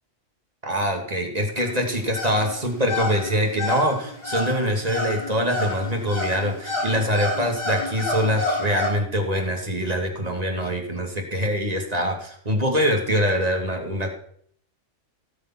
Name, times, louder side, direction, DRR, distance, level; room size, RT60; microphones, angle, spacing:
voice 1, 0.6-14.1, equal, 30° right, 2 dB, 2.7 m, -24 dB
sound 1, 1.6-8.9, left 2 dB, 30° left, 5.4 m, -29 dB
18.0 x 7.3 x 6.3 m, 0.64 s
omnidirectional pair, 1.3 m